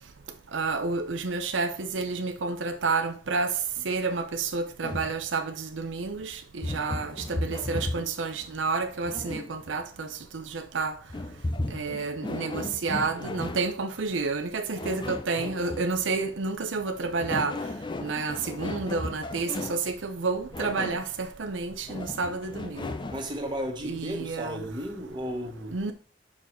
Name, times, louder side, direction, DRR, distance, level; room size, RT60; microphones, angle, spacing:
voice 1, 0.5-3.6 3.8-11.0 11.7-17.6 18.0-22.9 23.8-24.6 25.7-25.9, right 4 dB, 85° right, 0.7 m, -30 dB
sound 1, 4.8-5.2 6.6-8.2 9.0-9.7 11.1-13.7 14.8-15.9 17.0-19.9 20.5-21.1 21.9-23.3, left 2 dB, 25° left, 0.6 m, -35 dB
voice 2, 23.1-25.7, equal, 25° right, 1.7 m, -34 dB
5.8 x 4.7 x 4.7 m
head